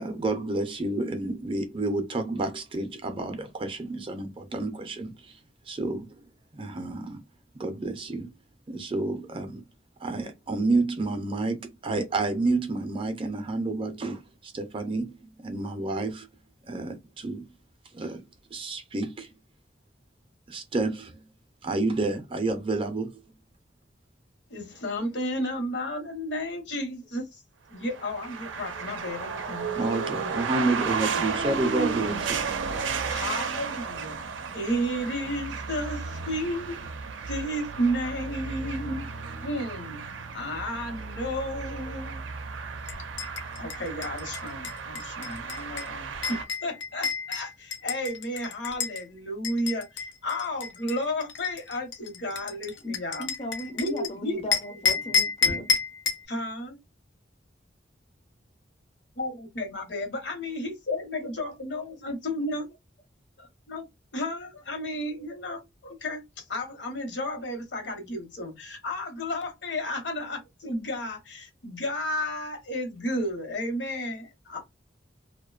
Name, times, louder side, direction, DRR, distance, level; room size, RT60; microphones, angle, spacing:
voice 1, 0.0-5.4 5.7-6.0 6.5-7.2 7.5-8.3 8.7-9.6 10.0-16.3 16.6-17.4 17.9-18.2 18.5-19.3 20.5-21.3 21.6-23.2 29.8-32.1, right 2 dB, 30° right, 0.4 m, -30 dB
voice 2, 24.5-27.4 27.7-29.8 30.2-30.6 31.2-31.3 31.8-32.5 33.1-34.2 34.5-36.8 37.3-39.1 39.4-40.0 40.3-42.2 43.6-53.3 53.8-54.4 56.3-56.8 59.2-62.7 63.4-63.9 64.1-74.6, left 1 dB, 75° left, 0.9 m, -33 dB
sound 1, 27.9-46.4, right 5 dB, 90° right, 0.4 m, -33 dB
sound 2, 42.9-49.0 49.4-54.1 54.5-56.3, left 6 dB, 90° left, 0.6 m, -30 dB
voice 3, 52.8-55.7 61.8-61.9, left 1 dB, 35° left, 0.4 m, -37 dB
2.5 x 2.1 x 2.3 m
head